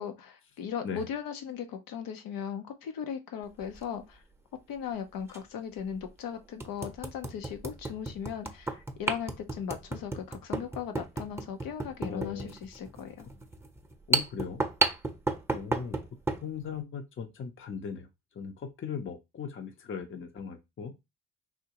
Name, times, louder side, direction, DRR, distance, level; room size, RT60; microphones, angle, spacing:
voice 1, 0.0-4.2 4.7-13.3, left 8 dB, 80° left, 0.8 m, -38 dB
sound 1, 3.6-3.8 5.3-5.4 6.0-6.1 6.6-16.5, right 3 dB, 10° right, 0.7 m, -33 dB
voice 2, 12.0-12.6 14.1-14.7 15.5-16.0 16.4-18.1 18.3-20.9, left 6 dB, 35° left, 0.7 m, -38 dB
3.6 x 2.7 x 2.9 m
supercardioid pair, 70°, 34 cm